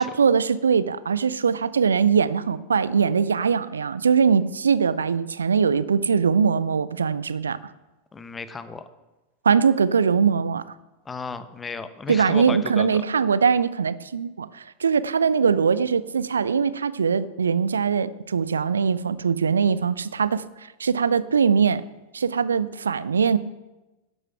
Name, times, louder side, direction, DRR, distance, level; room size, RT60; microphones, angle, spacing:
voice 1, 0.0-7.6 9.4-10.6 12.1-21.8 22.1-23.4, right 6 dB, 70° right, 17 dB, 0.5 m, -21 dB
voice 2, 8.1-8.9 11.0-13.0, left 4 dB, 15° left, 12 dB, 0.9 m, -34 dB
11.5 x 8.1 x 5.8 m, 1.1 s
figure-of-eight pair, 90°, 0 cm